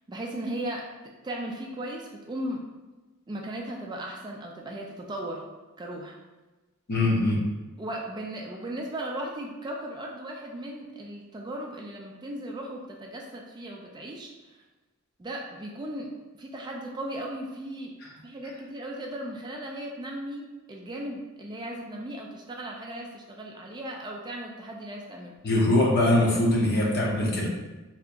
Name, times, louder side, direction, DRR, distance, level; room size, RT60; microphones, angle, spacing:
voice 1, 0.1-0.9 1.2-2.6 3.3-5.4 5.8-6.2 7.8-14.6 15.2-16.1 16.4-17.9 18.2-25.3, right 1 dB, 20° right, -1 dB, 0.3 m, -36 dB
voice 2, 6.9-7.4 25.4-27.5, left 1 dB, 50° left, -2 dB, 0.7 m, -22 dB
2.8 x 2.5 x 3.4 m, 1.2 s
head